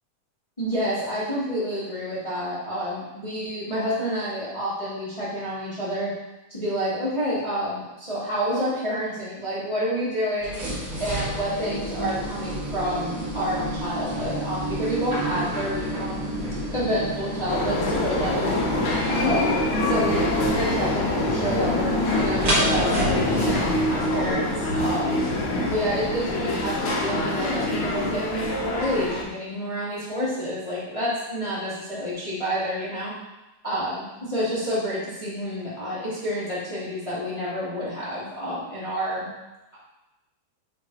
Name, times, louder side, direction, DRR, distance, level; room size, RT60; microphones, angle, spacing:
voice 1, 0.6-6.1 6.5-10.6 11.0-16.3 16.7-18.6 19.0-19.5 19.9-25.2 25.6-33.1 33.6-39.3, equal, 10° left, -10 dB, 1.7 m, -29 dB
sound 1, 10.4-24.3, right 1 dB, 40° right, 2.4 m, -30 dB
sound 2, 17.5-29.2, left 1 dB, 65° left, 1.3 m, -25 dB
7.4 x 3.9 x 4.8 m, 1.0 s
omnidirectional pair, 3.8 m